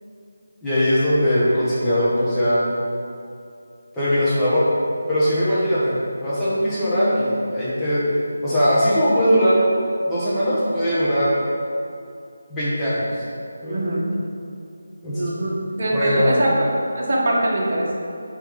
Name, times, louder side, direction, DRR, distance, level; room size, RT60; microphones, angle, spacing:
voice 1, 0.6-2.7 3.9-4.7 5.1-8.0 8.4-9.7 10.1-11.4 12.5-13.2 13.6-14.0 15.0-15.5 15.9-16.4, equal, 5° left, -13 dB, 1.5 m, -20 dB
voice 2, 13.7-14.1 15.1-16.7 16.9-17.9, right 1 dB, 50° right, -3 dB, 1.3 m, -22 dB
8.9 x 3.4 x 3.9 m, 2.5 s
figure-of-eight pair, 165°, 0 cm